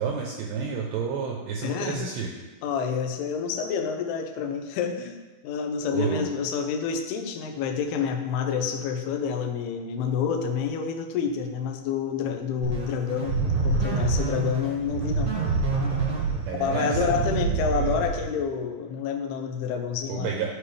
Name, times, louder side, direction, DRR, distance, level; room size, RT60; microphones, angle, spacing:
voice 1, 0.0-2.3 5.9-6.3 16.5-17.2 17.5-18.0 20.1-20.5, right 6 dB, 80° right, -1 dB, 2.5 m, -30 dB
voice 2, 1.6-2.0 2.6-15.4 16.6-20.3, left 6 dB, 85° left, 5 dB, 2.3 m, -28 dB
sound 1, 12.6-18.4, right 4 dB, 60° right, 1.2 m, -27 dB
14.0 x 5.2 x 3.3 m, 1.2 s
omnidirectional pair, 5.7 m